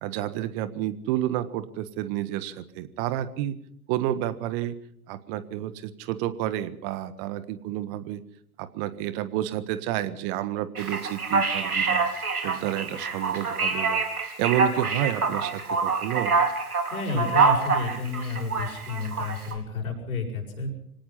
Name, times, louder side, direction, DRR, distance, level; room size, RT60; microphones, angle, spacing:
voice 1, 0.0-3.6 3.9-4.7 5.1-8.2 8.6-12.1 12.4-14.0 14.4-16.4, right 13 dB, 40° right, 14 dB, 1.6 m, -30 dB
Male speech man speaking, 10.8-19.5, right 4 dB, 80° right, 4.6 m, -25 dB
voice 2, 16.9-20.7, left 3 dB, 70° left, 2 dB, 7.4 m, -31 dB
25.0 x 18.0 x 5.8 m, 0.65 s
figure-of-eight pair, 90°, 44 cm